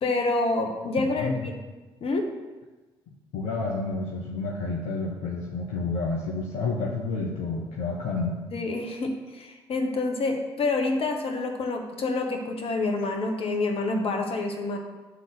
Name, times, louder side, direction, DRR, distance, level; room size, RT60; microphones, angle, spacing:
voice 1, 0.0-1.5 2.0-2.3 8.5-14.8, left 3 dB, 45° left, 4 dB, 1.2 m, -27 dB
voice 2, 1.0-1.5 3.1-8.3, left 3 dB, 60° left, -1 dB, 0.9 m, -30 dB
8.3 x 3.9 x 6.3 m, 1.2 s
figure-of-eight pair, 45°, 13 cm